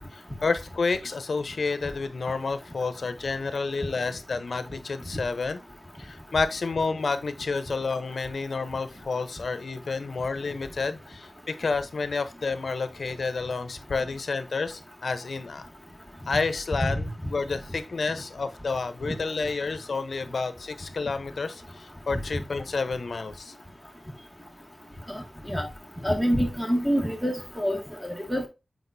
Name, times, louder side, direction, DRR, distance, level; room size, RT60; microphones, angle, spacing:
voice 1, 0.1-5.6 6.0-15.6 16.3-23.5, left 4 dB, 70° left, 0.8 m, -30 dB
voice 2, 26.0-28.5, equal, 5° right, 2.0 m, -26 dB
7.9 x 4.9 x 2.7 m
wide cardioid pair, 80°, 0 cm